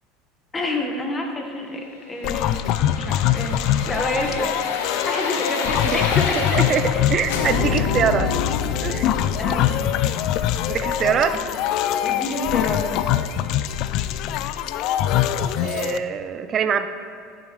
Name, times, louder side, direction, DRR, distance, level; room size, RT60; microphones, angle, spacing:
voice 1, 0.5-2.6 3.0-6.4 8.0-8.1 9.4-9.9 12.0-12.9, left 2 dB, 20° left, 2 dB, 1.5 m, -28 dB
sound 1, 2.2-16.0, left 11 dB, 60° left, 0.3 m, -23 dB
sound 2, 2.3-7.0 7.3-12.1 12.5-12.6, left 5 dB, 75° left, 0.9 m, -29 dB
voice 2, 6.4-8.3 8.8-9.1 10.7-11.4 15.6-16.9, right 7 dB, 40° right, 10 dB, 0.6 m, -23 dB
14.0 x 6.1 x 3.2 m, 2.4 s
hypercardioid pair, 80°, 0 cm